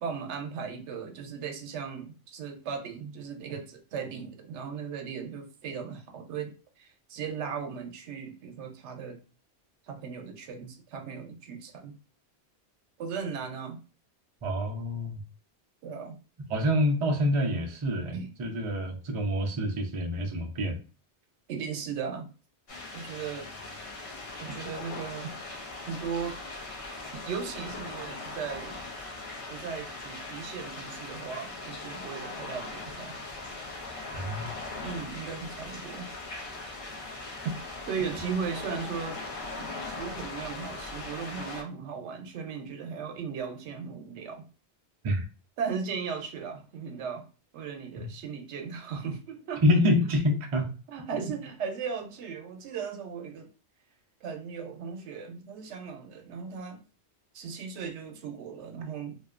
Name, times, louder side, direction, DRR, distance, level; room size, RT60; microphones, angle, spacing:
voice 1, 0.0-9.2 9.9-12.0 13.0-13.8 15.8-16.2 18.1-18.3 21.5-22.3 22.9-23.5 24.4-25.3 25.8-26.4 27.2-28.8 29.5-33.1 34.8-36.1 37.4-37.5 37.8-39.3 39.6-44.4 45.6-47.3 47.5-49.6 50.9-53.5 54.2-56.8 57.3-59.2, right 6 dB, 85° right, 4 dB, 0.9 m, -37 dB
voice 2, 14.4-15.2 16.5-20.8 34.1-34.5 45.0-45.2 48.0-48.1 49.6-50.7, left 1 dB, 50° right, 1 dB, 0.3 m, -27 dB
sound 1, 22.7-41.6, left 2 dB, 55° left, 0.4 m, -40 dB
2.6 x 2.1 x 2.3 m, 0.34 s
omnidirectional pair, 1.1 m